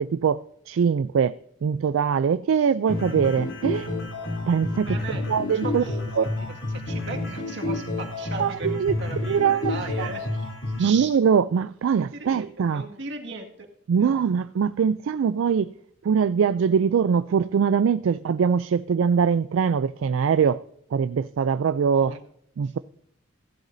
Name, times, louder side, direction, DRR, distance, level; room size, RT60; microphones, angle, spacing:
voice 1, 0.0-1.3 1.6-3.9 4.5-5.0 5.3-5.8 6.2-6.3 8.4-9.0 9.3-9.7 10.0-10.1 10.8-12.8 13.9-15.7 16.0-20.6 20.9-22.2 22.6-22.8, right 6 dB, 85° right, 0.3 m, -22 dB
sound 1, 2.9-10.9, left 2 dB, 80° left, 3.3 m, -30 dB
voice 2, 3.7-4.0 4.8-5.3 5.6-8.7 9.0-10.2 10.8-11.1 12.1-13.7 14.0-14.2 21.9-22.3 22.6-22.7, right 3 dB, 65° right, 2.0 m, -38 dB
16.0 x 11.5 x 2.6 m
head